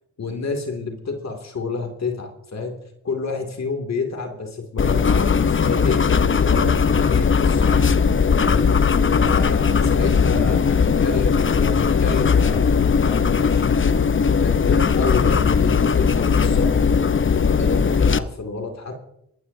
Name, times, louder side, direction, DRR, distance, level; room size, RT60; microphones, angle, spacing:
voice 1, 0.2-2.8 3.0-7.9 8.4-8.7 9.1-12.6 13.0-13.7 14.4-16.9 17.5-19.0, left 4 dB, 55° left, 3 dB, 2.6 m, -29 dB
sound 1, 4.8-18.2, left 6 dB, 40° left, 0.8 m, -18 dB
19.5 x 15.0 x 2.7 m, 0.81 s
supercardioid pair, 45°, 32 cm